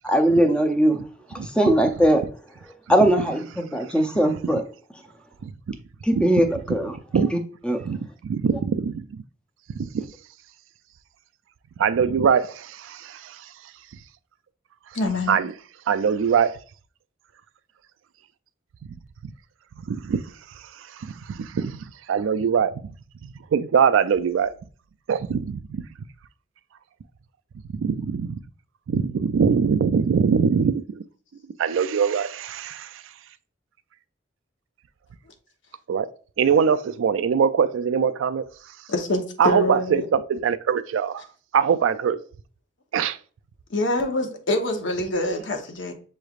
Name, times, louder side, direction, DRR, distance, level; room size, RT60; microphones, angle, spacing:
voice 1, 0.0-1.0 1.3-2.2 2.9-4.6 6.0-6.9 7.3-7.4 7.6-7.8, right 1 dB, 5° left, 0.4 m, -20 dB
voice 2, 7.8-9.2 9.7-9.9 11.8-13.4 15.3-15.5 15.9-16.5 19.9-20.2 21.0-22.9 23.2-24.5 25.1-25.8 27.8-28.4 28.9-31.0 31.6-33.0 35.9-36.1 36.4-38.4 39.4-41.2 41.5-42.2 42.9-43.2, right 6 dB, 85° right, 0.3 m, -22 dB
voice 3, 14.9-15.4 38.9-40.1 43.7-45.9, left 1 dB, 70° left, 0.9 m, -25 dB
6.9 x 3.2 x 2.4 m
head